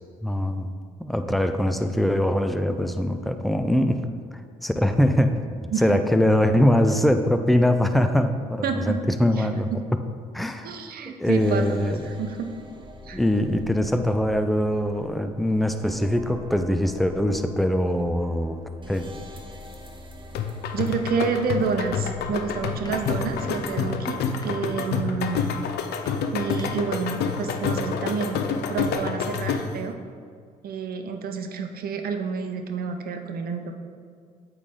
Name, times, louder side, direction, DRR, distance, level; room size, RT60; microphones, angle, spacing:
voice 1, 0.2-0.7 1.0-4.0 4.6-5.4 5.8-9.7 10.3-10.7 11.1-12.2 13.1-19.1, left 1 dB, ahead, 7 dB, 0.5 m, -22 dB
voice 2, 8.6-8.9 9.4-9.5 10.6-11.8 12.0-12.5 13.0-13.2 20.7-25.5 26.3-28.4 28.7-30.0 30.6-33.7, right 5 dB, 60° right, 5 dB, 0.7 m, -29 dB
sound 1, 11.4-23.7, left 1 dB, 30° right, 0.9 m, -44 dB
sound 2, 20.3-29.9, left 6 dB, 70° left, 0.5 m, -28 dB
sound 3, 22.3-28.1, left 2 dB, 25° left, 0.9 m, -45 dB
8.3 x 3.3 x 3.7 m, 2.1 s
supercardioid pair, 55°, 17 cm